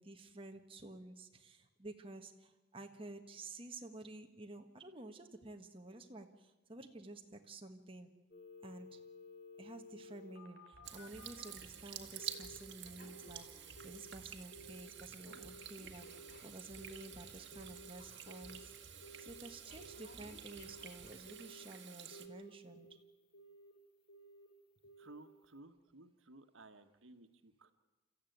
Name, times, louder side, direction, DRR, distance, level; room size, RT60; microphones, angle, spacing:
voice 1, 0.0-8.1 8.6-9.0 9.6-22.9, right 2 dB, 30° right, 4 dB, 1.4 m, -52 dB
Telephone, 8.3-11.6 12.2-12.6 12.8-14.2 14.5-14.9 15.3-18.7 19.0-19.4 19.7-21.7 22.1-23.0 23.3-23.7 24.1-24.5 24.8-25.2 25.6-25.7, equal, 60° left, 3.1 m, -56 dB
sound 1, 10.7-21.1, equal, 5° right, 6.0 m, -62 dB
Water tap faucet / Sink (filling or washing), 10.8-22.3, right 9 dB, 60° right, 1.7 m, -51 dB
voice 2, 25.0-27.7, right 2 dB, 85° right, 7 dB, 1.4 m, -57 dB
30.0 x 14.0 x 9.4 m, 1.2 s
head